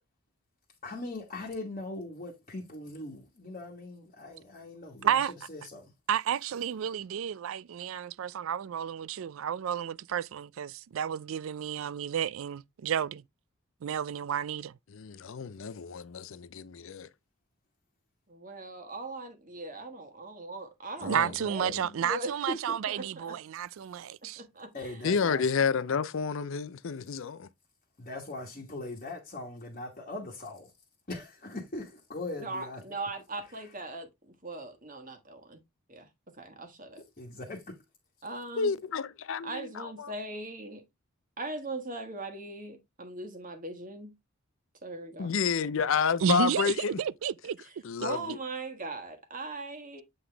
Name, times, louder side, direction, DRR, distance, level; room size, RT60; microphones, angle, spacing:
voice 1, 0.8-5.9 24.7-25.5 28.0-30.7 31.1-32.8 37.2-37.7, left 2 dB, 35° left, 1.3 m, -40 dB
voice 2, 5.0-5.3 6.1-13.2 13.8-14.7 21.0-24.4 46.2-47.6, right 8 dB, 65° right, 0.3 m, -31 dB
voice 3, 14.9-17.1 21.0-21.3 21.6-21.9 25.0-27.5 38.6-40.1 45.2-47.0 47.8-48.4, left 6 dB, 60° left, 0.5 m, -30 dB
voice 4, 18.3-23.4 24.2-25.0 32.4-35.6 35.9-36.1 36.4-37.0 38.2-38.7 39.4-40.8 41.4-44.1 44.8-45.3 47.6-47.7 48.0-50.0, right 2 dB, 35° right, 1.3 m, -40 dB
7.8 x 3.9 x 3.3 m
head